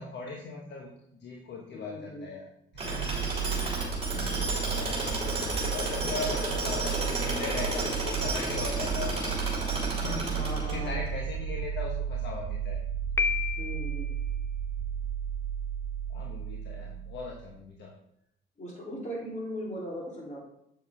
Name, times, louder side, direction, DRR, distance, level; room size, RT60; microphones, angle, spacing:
voice 1, 0.0-2.5 2.7-3.8 4.1-9.4 9.9-12.8 16.1-17.9, left 4 dB, 60° left, 0 dB, 1.2 m, -39 dB
voice 2, 1.7-2.3 10.3-10.9 13.6-14.1 18.6-20.4, equal, 35° left, -3 dB, 3.3 m, -38 dB
sound 1, 2.7-17.5, right 7 dB, 80° right, 0.9 m, -33 dB
Tools, 2.8-11.1, right 2 dB, 30° right, 2.8 m, -32 dB
Piano, 13.2-14.1, left 6 dB, 15° left, 0.4 m, -30 dB
7.8 x 6.9 x 3.6 m, 0.77 s
cardioid pair, 90°, 20 cm